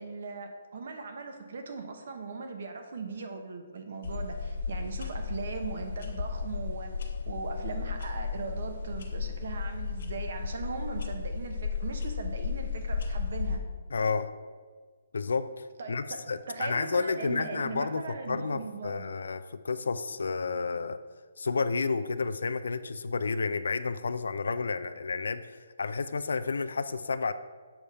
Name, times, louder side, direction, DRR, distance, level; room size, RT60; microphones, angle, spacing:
voice 1, 0.0-6.9 7.3-13.6 15.8-16.2 16.5-19.2, right 4 dB, 55° right, 5 dB, 0.8 m, -39 dB
sound 1, 4.0-13.6, left 5 dB, 55° left, 1.0 m, -34 dB
voice 2, 13.9-14.3 15.1-21.0 21.4-27.3, left 4 dB, 85° left, 11 dB, 0.3 m, -31 dB
7.1 x 3.4 x 5.3 m, 1.5 s
hypercardioid pair, 170°, 0 cm